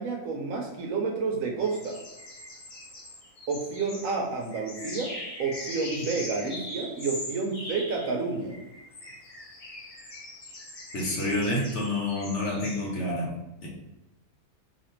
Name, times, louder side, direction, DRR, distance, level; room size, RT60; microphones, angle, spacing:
voice 1, 0.0-2.0 3.5-5.1 5.4-8.6, right 4 dB, 70° right, 2 dB, 0.9 m, -30 dB
sound 1, 1.6-12.9, left 1 dB, 40° left, 0.5 m, -41 dB
voice 2, 10.9-13.4 13.6-13.7, left 1 dB, 55° left, -3 dB, 1.0 m, -28 dB
2.7 x 2.5 x 4.2 m, 1.0 s
omnidirectional pair, 1.6 m